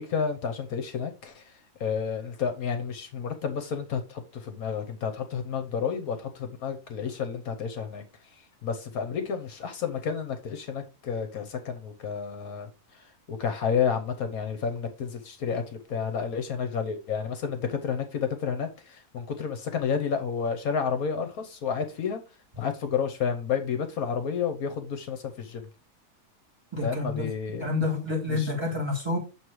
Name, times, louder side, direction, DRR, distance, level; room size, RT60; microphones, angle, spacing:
voice 1, 0.0-1.5 1.8-8.0 8.6-12.7 13.3-22.2 22.6-25.7 26.8-27.7 28.3-28.5, left 6 dB, 70° left, 1.3 m, -30 dB
voice 2, 26.7-27.3 27.6-29.2, left 3 dB, 15° right, 2.4 m, -28 dB
7.3 x 3.1 x 4.6 m
omnidirectional pair, 1.6 m